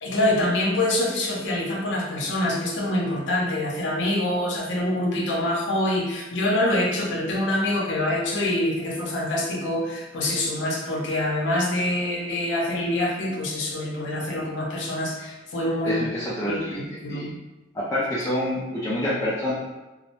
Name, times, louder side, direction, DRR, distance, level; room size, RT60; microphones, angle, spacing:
voice 1, 0.0-16.0 16.5-16.6 17.0-17.3, left 1 dB, 70° left, -2 dB, 0.6 m, -25 dB
voice 2, 15.8-16.8 17.1-17.3 17.7-19.5, left 1 dB, 15° left, -8 dB, 0.3 m, -27 dB
2.2 x 2.1 x 2.8 m, 1.1 s
head